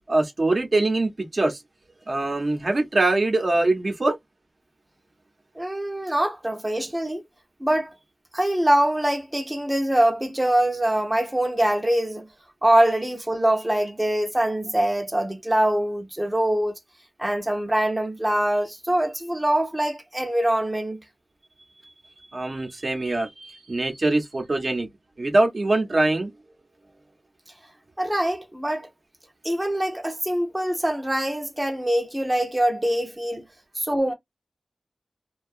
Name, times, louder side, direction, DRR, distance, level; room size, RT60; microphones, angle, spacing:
voice 1, 0.1-1.6 2.1-4.2 22.3-24.9 25.2-26.3, right 2 dB, 55° right, 0.7 m, -23 dB
voice 2, 5.6-7.2 7.6-7.9 8.3-12.3 12.6-16.7 17.2-21.0 28.0-28.9 29.4-33.4 33.8-34.1, right 1 dB, 15° right, 0.6 m, -23 dB
2.7 x 2.3 x 2.4 m
wide cardioid pair, 70°, 0 cm